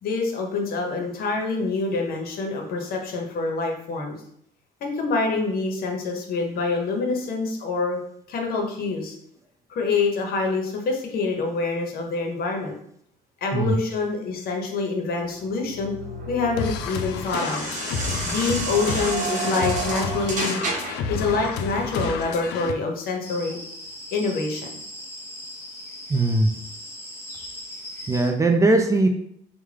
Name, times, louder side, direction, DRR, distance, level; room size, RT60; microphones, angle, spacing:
voice 1, 0.0-4.2 4.8-8.0 8.3-9.2 9.7-12.7 13.4-15.9 16.3-17.7 18.2-20.6 21.1-23.6 24.1-24.7, left 3 dB, 65° left, 2 dB, 0.9 m, -26 dB
sound 1, 15.2-21.1, right 3 dB, 45° right, 0.8 m, -31 dB
sound 2, 16.6-22.7, left 5 dB, 80° left, 0.4 m, -30 dB
Tropical Forrest Ambient, 23.2-28.3, left 1 dB, 15° left, 0.8 m, -39 dB
voice 2, 26.1-26.5 28.1-29.1, right 2 dB, 20° right, 4 dB, 0.4 m, -19 dB
3.5 x 2.2 x 3.3 m, 0.70 s
cardioid pair, 110°, 17 cm